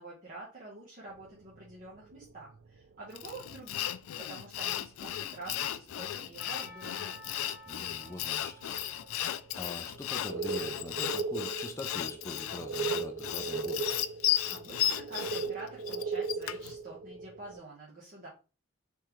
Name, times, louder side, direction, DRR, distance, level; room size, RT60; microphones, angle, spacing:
voice 1, 0.0-7.2 14.5-18.3, right 2 dB, 40° right, 1.0 m, -47 dB
sound 1, 1.2-2.7 3.7-3.8 4.6-4.7 5.3-5.4 5.6-5.7 6.9-7.2 7.7-8.0 8.5-8.7 9.4-9.6 9.9-17.6, right 4 dB, 65° right, 0.3 m, -37 dB
Sawing, 3.2-16.7, left 12 dB, 90° left, 0.3 m, -35 dB
Percussion / Church bell, 6.4-10.7, equal, 10° right, 1.1 m, -52 dB
voice 2, 7.7-8.8 9.5-14.0, left 2 dB, 15° left, 0.4 m, -43 dB
3.6 x 3.2 x 3.0 m
head